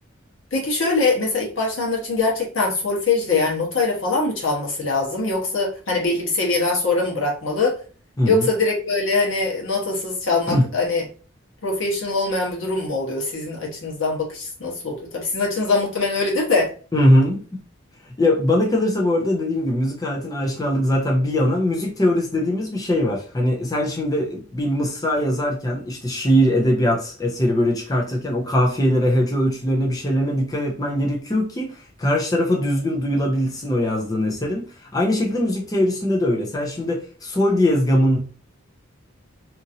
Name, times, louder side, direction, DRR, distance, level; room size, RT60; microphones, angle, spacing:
voice 1, 0.5-7.8 8.2-11.0 11.6-16.7, left 3 dB, 80° left, 1.1 m, -22 dB
voice 2, 8.2-8.5 10.5-10.7 16.9-17.6 18.1-38.2, left 1 dB, 20° left, 0.5 m, -21 dB
2.8 x 2.5 x 2.7 m
head